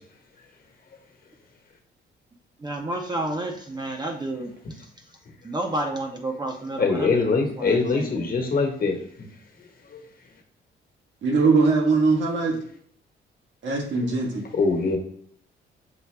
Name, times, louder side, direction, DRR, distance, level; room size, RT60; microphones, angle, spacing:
voice 1, 2.6-4.5 5.4-8.3, right 1 dB, 20° right, 2 dB, 0.7 m, -30 dB
voice 2, 6.8-9.0 9.9-10.0 14.6-15.0, left 4 dB, 45° left, 3 dB, 1.3 m, -22 dB
voice 3, 11.2-12.6 13.6-14.4, right 4 dB, 70° right, 0 dB, 1.5 m, -21 dB
6.6 x 2.3 x 3.3 m, 0.64 s
cardioid pair, 90°, 20 cm